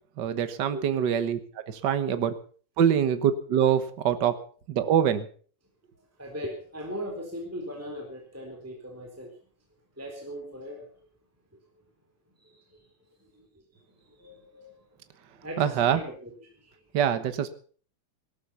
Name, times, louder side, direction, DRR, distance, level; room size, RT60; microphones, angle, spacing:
voice 1, 0.2-1.4 1.7-2.3 2.8-4.3 4.7-5.3 15.6-16.0 16.9-17.5, right 9 dB, 65° right, 11 dB, 1.0 m, -24 dB
voice 2, 6.2-9.3 10.0-10.9 12.4-12.8 13.3-13.5 14.1-14.7 15.4-16.7, equal, 5° right, 1 dB, 3.7 m, -39 dB
18.5 x 13.0 x 5.7 m, 0.44 s
omnidirectional pair, 4.0 m